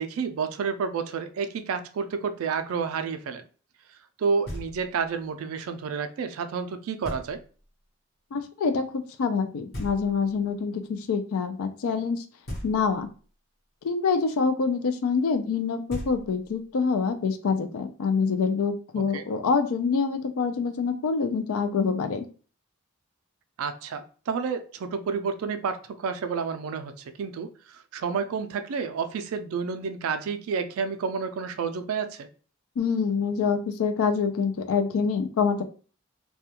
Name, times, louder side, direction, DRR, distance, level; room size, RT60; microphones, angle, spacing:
voice 1, 0.0-3.4 4.2-7.4 19.1-19.3 23.6-26.9 27.2-32.3, right 5 dB, 80° right, 9 dB, 0.3 m, -30 dB
Knock, 4.4-5.1 7.0-7.7 9.7-10.5 12.4-13.2 15.5-15.6 15.9-16.7, equal, 45° left, 0.9 m, -39 dB
voice 2, 8.3-8.9 9.2-10.8 11.1-12.2 12.6-13.1 13.8-22.3 32.8-35.6, left 5 dB, 80° left, 9 dB, 0.4 m, -26 dB
2.3 x 2.2 x 2.8 m, 0.39 s
head